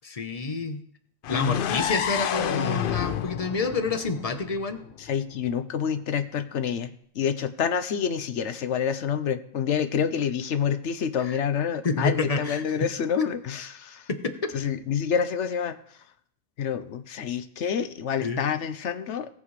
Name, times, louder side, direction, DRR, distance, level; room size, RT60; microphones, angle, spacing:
voice 1, 0.0-0.8 1.3-4.8 11.2-11.4 11.8-12.6 13.2-13.3 14.1-14.3 18.2-18.4, left 3 dB, 35° left, 8 dB, 0.9 m, -28 dB
sound 1, 1.2-5.1, left 9 dB, 60° left, 0.6 m, -29 dB
voice 2, 5.0-14.1 14.5-15.8 16.6-19.3, left 7 dB, 80° left, 11 dB, 1.1 m, -28 dB
18.0 x 7.5 x 3.2 m, 0.64 s
omnidirectional pair, 1.2 m